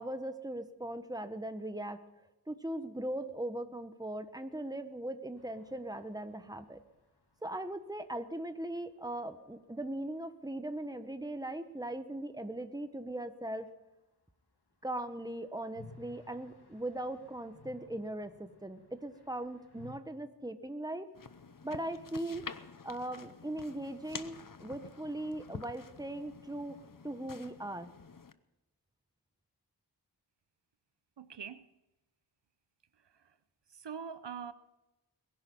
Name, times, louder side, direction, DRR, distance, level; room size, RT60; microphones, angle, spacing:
voice 1, 0.0-2.0 2.5-6.8 7.4-13.7 14.8-21.1 21.6-22.5 22.8-26.8 27.0-27.9, right 1 dB, 10° right, 1.3 m, -39 dB
sound 1, 5.4-9.2 9.4-9.5 9.7-9.8 14.8-20.0, left 3 dB, 65° left, 1.7 m, -58 dB
sound 2, 21.1-28.3, left 5 dB, 50° left, 0.8 m, -49 dB
voice 2, 31.2-31.7 33.7-34.5, right 7 dB, 80° right, 0.7 m, -43 dB
21.5 x 10.5 x 5.5 m
wide cardioid pair, 45°, 42 cm